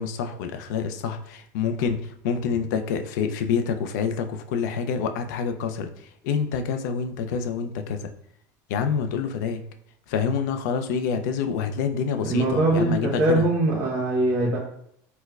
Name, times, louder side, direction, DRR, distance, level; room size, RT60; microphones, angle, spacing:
voice 1, 0.0-5.9 6.2-8.1 8.7-9.7 10.1-13.5, left 6 dB, 80° left, 7 dB, 0.4 m, -27 dB
voice 2, 12.2-14.6, right 2 dB, 40° right, -3 dB, 1.1 m, -22 dB
4.4 x 2.1 x 2.3 m, 0.70 s
supercardioid pair, 120°, 10 cm